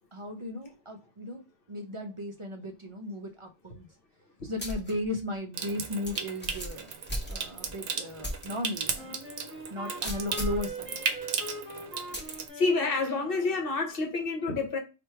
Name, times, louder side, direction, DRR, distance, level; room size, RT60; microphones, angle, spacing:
voice 1, 0.1-1.4 1.7-3.9 4.4-6.9 7.3-9.2 9.7-11.0, left 1 dB, 40° right, 0.5 m, -36 dB
sound 1, 4.6-4.9 5.3-5.4 6.1-7.7 8.2-8.5 8.9-9.0 10.0-10.7 12.1-12.4, equal, 10° left, 0.7 m, -36 dB
Water tap faucet / Sink (filling or washing) / Trickle dribble, 5.5-12.5, right 6 dB, 90° right, 0.9 m, -36 dB
Wind instrument woodwind instrument, 8.9-13.7, right 1 dB, 10° right, 1.4 m, -42 dB
voice 2, 12.5-14.8, left 3 dB, 55° left, 1.1 m, -28 dB
3.2 x 2.5 x 4.3 m
omnidirectional pair, 1.1 m